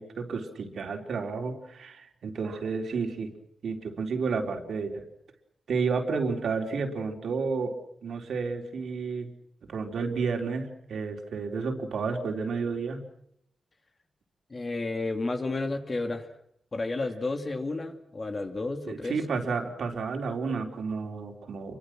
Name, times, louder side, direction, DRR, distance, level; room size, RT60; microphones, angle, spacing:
voice 1, 0.0-3.3 3.6-5.0 5.7-7.7 8.0-9.3 9.7-13.0 18.8-21.8, right 4 dB, 80° right, 3 dB, 4.2 m, -31 dB
voice 2, 14.5-16.3 16.7-19.2, left 2 dB, 35° left, 6 dB, 2.9 m, -31 dB
29.0 x 24.0 x 6.3 m, 0.72 s
wide cardioid pair, 110°, 0 cm